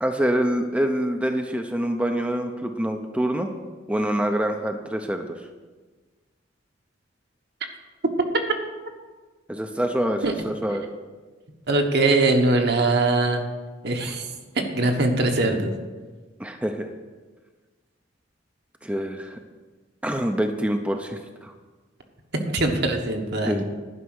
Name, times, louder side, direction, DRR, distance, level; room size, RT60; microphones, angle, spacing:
voice 1, 0.0-3.5 3.9-5.3 9.5-10.8 16.4-16.9 18.8-19.4 20.0-21.5 23.4-23.6, right 1 dB, 5° right, 4 dB, 0.6 m, -25 dB
voice 2, 11.7-13.4 13.8-14.3 14.5-15.7 22.5-23.6, right 2 dB, 60° right, 3 dB, 1.3 m, -21 dB
11.0 x 5.6 x 8.0 m, 1.3 s
head